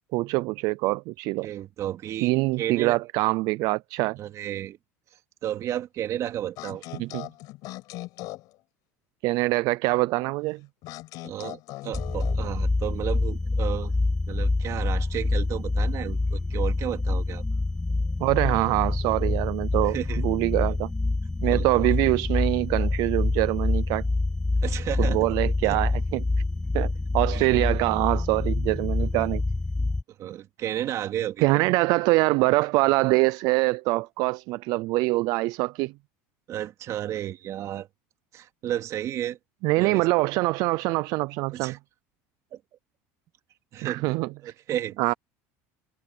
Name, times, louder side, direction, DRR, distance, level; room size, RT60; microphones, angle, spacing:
voice 1, 0.1-1.5 2.2-4.2 7.0-7.3 9.2-10.6 18.2-20.9 21.4-24.0 25.0-26.2 26.7-29.4 31.4-35.9 39.6-41.8 43.8-44.5 45.0-45.1, right 22 dB, 65° right, 0.5 m, -24 dB
voice 2, 1.4-3.0 4.2-4.8 5.4-6.8 11.2-13.9 14.3-17.4 19.2-19.3 19.8-20.2 21.5-21.6 24.6-25.3 25.6-25.8 27.3-27.5 30.2-31.6 36.5-37.9 38.3-39.4 39.8-40.0 41.5-41.8 42.5-42.6 43.7-44.1 44.4-45.0, right 11 dB, 50° right, 2.9 m, -33 dB
sound 1, 6.6-8.5 10.8-12.5, left 19 dB, 65° left, 5.6 m, -39 dB
sound 2, 11.9-30.0, left 2 dB, 10° left, 0.6 m, -26 dB
supercardioid pair, 115°, 7 cm